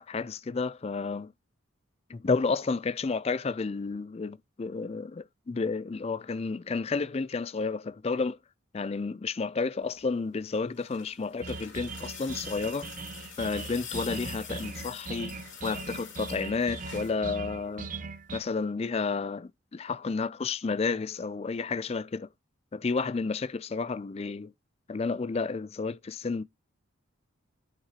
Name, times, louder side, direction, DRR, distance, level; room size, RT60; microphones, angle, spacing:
voice 1, 0.0-1.3 2.1-8.4 8.7-12.9 13.4-17.9 18.3-22.3 22.7-24.5 24.9-26.4, left 4 dB, 30° left, 0.3 m, -31 dB
sound 1, 10.4-17.2 18.5-18.6, left 7 dB, 65° left, 2.8 m, -46 dB
sound 2, 11.4-18.4, right 3 dB, 40° right, 0.6 m, -39 dB
9.7 x 5.8 x 2.9 m
head